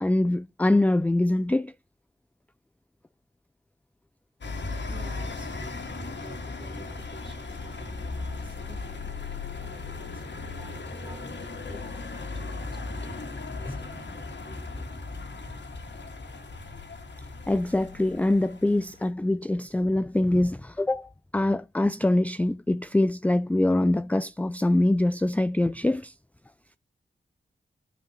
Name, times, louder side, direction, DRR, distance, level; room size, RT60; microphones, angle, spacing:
voice 1, 0.0-1.7 17.5-26.1, left 1 dB, 10° left, 0.4 m, -24 dB
sound 1, 4.4-19.1, left 3 dB, 70° left, 1.9 m, -37 dB
voice 2, 4.9-14.9, right 1 dB, 25° right, 2.3 m, -51 dB
13.5 x 5.0 x 2.9 m
cardioid pair, 40°, 19 cm